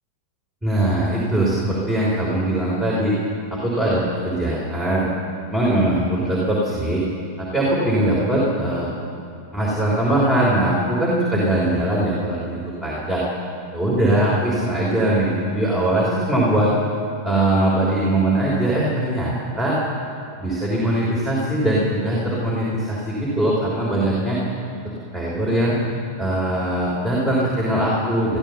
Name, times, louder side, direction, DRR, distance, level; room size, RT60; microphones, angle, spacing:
voice 1, 0.6-3.1 3.5-5.1 5.5-7.0 7.4-8.9 9.5-13.2 13.7-16.7 17.2-19.8 20.4-24.4 25.1-25.8 26.2-28.4, right 1 dB, 10° right, -6 dB, 3.4 m, -21 dB
13.5 x 13.5 x 6.9 m, 2.5 s
figure-of-eight pair, 90°, 0 cm